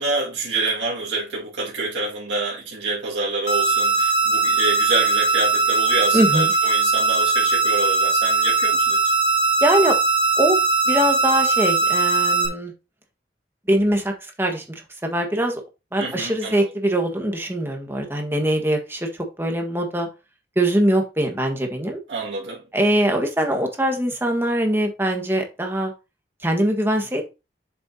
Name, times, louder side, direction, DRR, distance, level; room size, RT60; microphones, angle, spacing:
voice 1, 0.0-9.0 16.0-16.7 22.1-22.6, right 3 dB, 85° right, 2.1 m, -27 dB
sound 1, 3.5-12.5, right 4 dB, 75° left, 2.7 m, -20 dB
voice 2, 6.1-6.5 9.6-10.0 10.4-10.6 10.9-12.7 13.7-14.6 15.0-15.6 15.9-20.1 20.5-22.0 22.7-25.9 26.4-27.3, right 1 dB, 15° right, 1.5 m, -22 dB
7.7 x 7.2 x 2.8 m
head